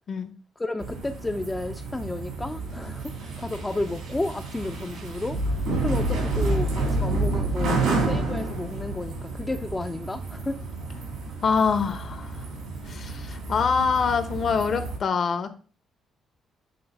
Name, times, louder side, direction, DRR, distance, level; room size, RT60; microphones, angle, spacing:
voice 1, 0.6-10.6, left 2 dB, 15° left, 4 dB, 0.4 m, -32 dB
sound 1, 0.8-15.0, right 2 dB, 90° right, 3.0 m, -29 dB
voice 2, 11.4-12.4 12.9-15.5, left 5 dB, 55° left, 9 dB, 0.8 m, -25 dB
7.8 x 3.2 x 4.0 m, 0.39 s
cardioid pair, 90°, 0 cm